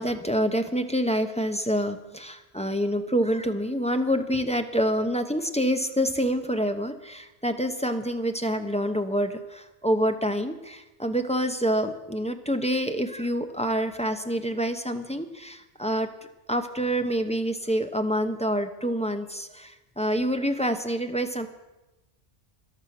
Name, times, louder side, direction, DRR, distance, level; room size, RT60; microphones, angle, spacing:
voice 1, 0.0-16.1 16.5-21.5, equal, 5° left, 6 dB, 0.7 m, -27 dB
13.5 x 11.5 x 5.9 m, 1.0 s
omnidirectional pair, 1.1 m